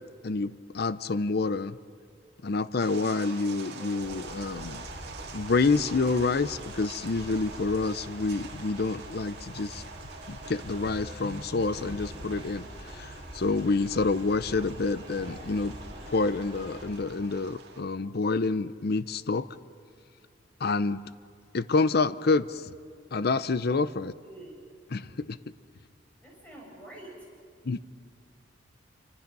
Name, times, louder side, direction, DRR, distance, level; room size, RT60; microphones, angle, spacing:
voice 1, 0.2-1.8 2.4-4.8 5.3-9.8 10.3-12.6 12.9-15.7 16.1-19.5 20.6-21.0 21.5-22.6 23.1-24.1 24.9-25.4 27.7-27.8, left 3 dB, 55° left, 15 dB, 0.6 m, -28 dB
sound 1, 2.8-17.8, right 4 dB, 60° right, 2.2 m, -46 dB
sound 2, 4.0-16.8, equal, 30° right, 6.6 m, -44 dB
voice 2, 24.0-24.6 26.2-27.3, right 1 dB, 10° left, -4 dB, 7.9 m, -47 dB
27.5 x 25.5 x 5.4 m, 2.3 s
head